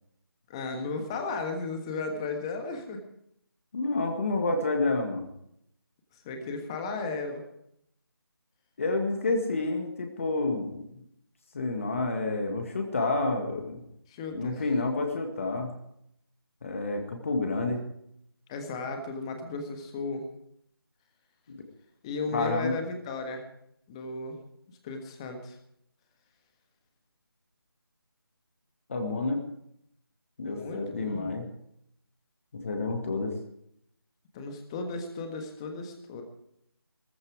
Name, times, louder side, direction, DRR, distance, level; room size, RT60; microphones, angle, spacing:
voice 1, 0.5-3.0 6.2-7.4 14.1-14.6 18.5-20.2 22.0-23.4 23.9-24.4 24.8-25.6 30.4-31.4 34.3-36.2, left 3 dB, 15° left, 5 dB, 1.5 m, -35 dB
voice 2, 3.7-5.3 8.8-10.8 11.5-13.8 14.3-15.7 16.6-17.8 22.3-22.8 28.9-29.4 30.4-31.5 32.5-33.4, left 2 dB, 35° left, 3 dB, 1.9 m, -29 dB
16.0 x 15.0 x 4.8 m, 0.74 s
figure-of-eight pair, 165°, 13 cm